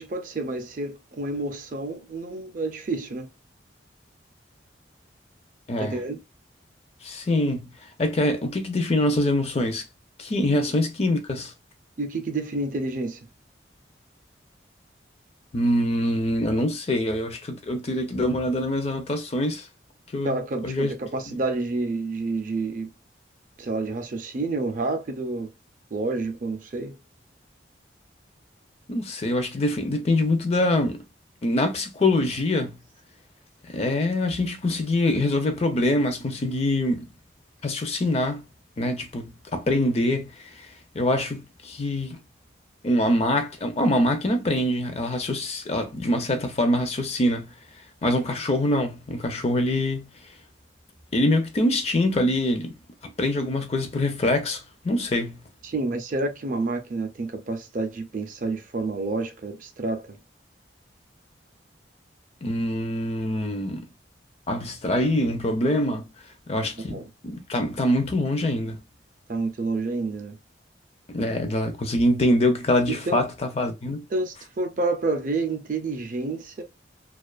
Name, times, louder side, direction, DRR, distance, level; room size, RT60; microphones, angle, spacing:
voice 1, 0.0-3.3 5.8-6.2 10.5-10.8 12.0-13.2 20.2-22.9 23.6-25.5 25.9-27.0 55.6-60.2 66.9-67.1 69.3-70.4 72.9-73.3 74.1-76.6, right 3 dB, 45° right, 0.4 m, -29 dB
voice 2, 5.7-6.0 7.0-7.7 8.0-9.8 10.2-11.5 15.5-19.7 20.1-20.4 20.6-20.9 28.9-31.0 31.4-32.8 33.7-37.1 37.6-38.4 38.8-40.7 40.9-42.2 42.8-47.5 48.0-50.1 51.1-52.7 53.2-55.4 62.4-63.9 64.5-66.1 66.5-68.8 71.1-74.0, left 1 dB, 35° left, 0.4 m, -24 dB
2.4 x 2.3 x 2.3 m
head